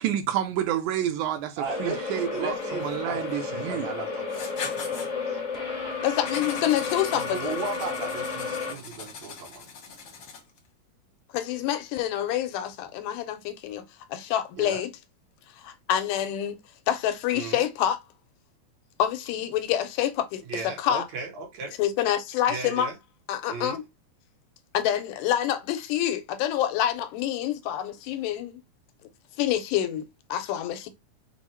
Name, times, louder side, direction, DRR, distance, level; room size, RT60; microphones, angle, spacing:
voice 1, 0.0-3.9, right 11 dB, 80° right, 1.9 m, -29 dB
sound 1, 1.6-8.7, left 4 dB, 45° left, 1.0 m, -32 dB
voice 2, 1.6-4.4 5.3-5.4 7.3-9.6 14.6-14.8 17.3-17.6 20.5-21.8 22.5-22.9 23.5-23.8, right 4 dB, 60° right, 2.5 m, -35 dB
Writing, 4.3-5.1 6.2-10.6, left 5 dB, 60° left, 1.2 m, -40 dB
voice 3, 6.0-7.6 11.3-14.9 15.6-16.6 16.9-18.0 19.0-21.1 21.8-22.9 23.3-23.8 24.7-28.5 29.4-30.1 30.3-30.9, left 11 dB, 85° left, 2.2 m, -27 dB
6.0 x 2.1 x 4.2 m
omnidirectional pair, 3.7 m